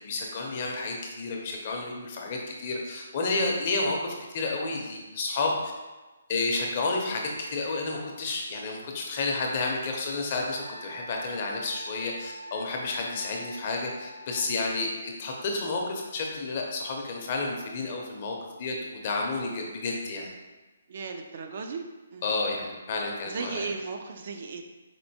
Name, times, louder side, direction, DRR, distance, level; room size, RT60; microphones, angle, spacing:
voice 1, 0.0-5.7 6.3-20.3 22.2-23.7, left 3 dB, 35° left, 0 dB, 0.6 m, -31 dB
Wind instrument woodwind instrument, 10.4-14.6, equal, 75° left, 0.6 m, -44 dB
voice 2, 20.9-21.8 22.1-22.3 23.3-24.6, right 5 dB, 45° right, 5 dB, 0.3 m, -36 dB
4.3 x 2.5 x 2.7 m, 1.2 s
hypercardioid pair, 165°, 0 cm